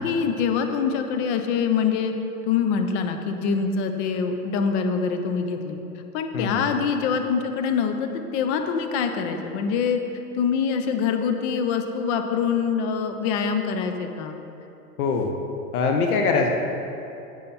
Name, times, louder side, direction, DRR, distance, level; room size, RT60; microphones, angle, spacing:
voice 1, 0.0-2.1 2.5-5.8 6.1-10.0 10.3-14.3, left 6 dB, 45° left, 5 dB, 1.2 m, -24 dB
voice 2, 6.3-6.7 15.0-15.3 15.7-16.5, left 4 dB, 65° left, 2 dB, 1.3 m, -22 dB
10.5 x 8.5 x 4.4 m, 2.8 s
hypercardioid pair, 115°, 47 cm